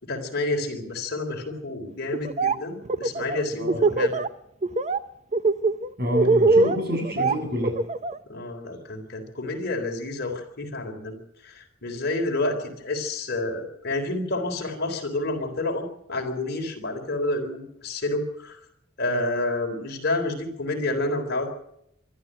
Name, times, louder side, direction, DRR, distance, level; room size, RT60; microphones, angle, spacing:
voice 1, 0.0-4.2 8.3-11.2 11.4-18.6 19.0-21.5, left 2 dB, 55° left, 3 dB, 3.8 m, -29 dB
Laughter, 2.1-2.6 2.9-4.3 4.6-5.0 5.3-8.2, right 3 dB, 35° right, 0.8 m, -22 dB
voice 2, 6.0-7.8, left 1 dB, 50° right, 3 dB, 7.3 m, -28 dB
24.5 x 12.5 x 9.0 m, 0.77 s
head